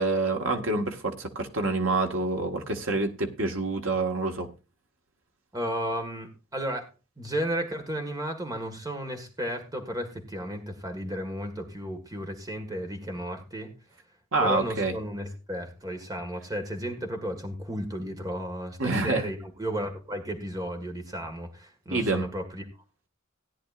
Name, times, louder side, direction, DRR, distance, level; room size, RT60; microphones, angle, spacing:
voice 1, 0.0-4.5 14.3-14.9 18.8-19.3 21.9-22.3, right 2 dB, 75° right, 1.6 m, -27 dB
voice 2, 5.5-6.9 7.2-13.7 14.4-22.7, equal, 15° right, 1.7 m, -33 dB
17.0 x 10.0 x 2.5 m
head